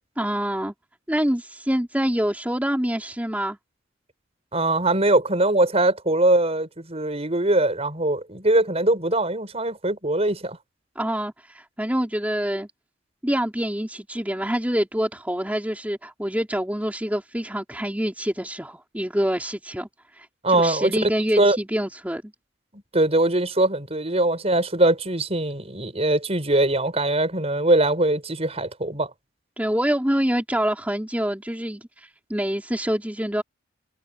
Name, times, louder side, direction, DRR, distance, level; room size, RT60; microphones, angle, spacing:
voice 1, 0.2-0.7 1.1-3.6 11.0-12.7 13.2-19.9 20.2-20.3 20.6-22.3 29.6-33.4, equal, 10° right, 3.8 m, -26 dB
voice 2, 4.5-10.6 20.4-21.1 21.4-21.6 22.7-29.1, right 2 dB, 35° right, 5.7 m, -22 dB
head